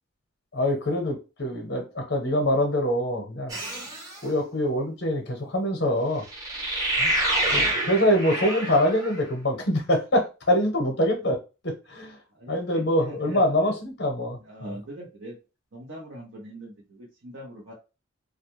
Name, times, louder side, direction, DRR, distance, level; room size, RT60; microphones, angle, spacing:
voice 1, 0.5-3.6 4.2-6.2 7.0-7.1 7.5-11.4 11.6-12.2 12.5-14.7, equal, 50° left, 0.8 m, -24 dB
sound 1, 3.5-4.2 6.3-9.2, right 1 dB, 20° right, 0.7 m, -27 dB
voice 2, 12.3-13.8 14.4-15.4 15.7-17.7, equal, 70° right, 0.8 m, -41 dB
2.3 x 2.1 x 3.0 m
head